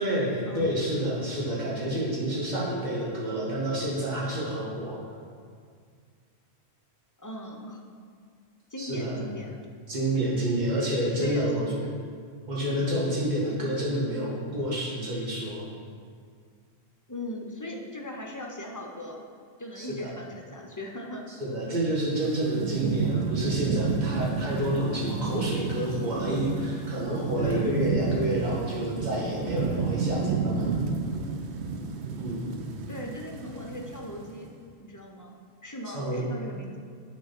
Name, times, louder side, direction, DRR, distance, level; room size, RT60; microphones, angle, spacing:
voice 1, 0.0-5.0 8.8-9.2 9.9-11.7 12.5-15.7 19.8-20.1 21.4-30.8 32.1-32.5 35.9-36.2, right 1 dB, 40° right, -6 dB, 1.7 m, -29 dB
voice 2, 7.2-7.8 8.7-9.5 11.2-11.5 17.1-19.2 19.6-21.3 27.4-27.7 32.9-34.5 34.8-36.8, left 1 dB, 20° left, 0 dB, 0.6 m, -39 dB
Thunderstorm / Rain, 22.1-34.4, right 5 dB, 75° right, 0.9 m, -31 dB
8.4 x 3.8 x 5.8 m, 2.1 s
omnidirectional pair, 1.1 m